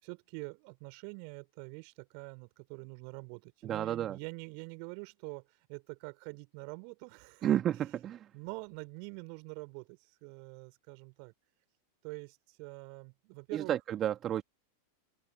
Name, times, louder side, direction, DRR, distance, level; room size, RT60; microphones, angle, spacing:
voice 1, 0.0-5.4 5.7-7.5 8.3-11.3 12.0-13.8, right 40 dB or more, 45° right, 4.3 m, -45 dB
voice 2, 3.6-4.2 7.4-8.3 13.5-14.4, right 11 dB, 30° right, 1.8 m, -31 dB
open air
figure-of-eight pair, 90°, 0 cm